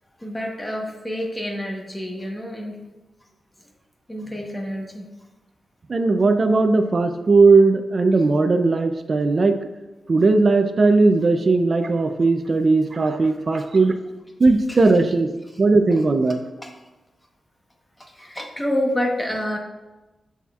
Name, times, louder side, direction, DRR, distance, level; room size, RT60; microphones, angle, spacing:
voice 1, 0.2-2.9 4.1-5.1 14.7-14.8 16.6-16.7 18.0-19.6, left 1 dB, 10° left, 1 dB, 1.1 m, -28 dB
voice 2, 5.9-9.6 10.1-13.9 14.4-15.3 15.6-16.4, right 3 dB, 40° right, 6 dB, 0.5 m, -17 dB
12.5 x 4.2 x 2.4 m, 1.1 s
wide cardioid pair, 115°, 0 cm